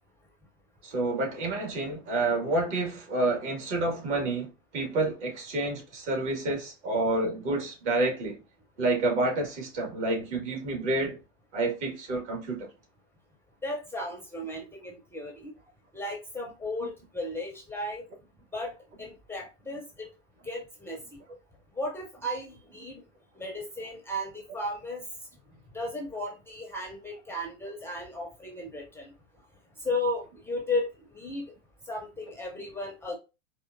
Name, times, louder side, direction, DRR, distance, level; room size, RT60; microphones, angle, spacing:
voice 1, 0.8-8.4 8.8-11.2 11.5-12.7, right 2 dB, 60° right, 2.0 m, -29 dB
voice 2, 13.6-15.5 15.9-18.1 18.5-20.1 20.4-21.0 21.8-23.0 23.4-25.0 25.7-29.1 29.8-31.4 31.9-33.2, left 1 dB, 5° left, 0.5 m, -35 dB
4.3 x 2.6 x 2.5 m
hypercardioid pair, 100°, 39 cm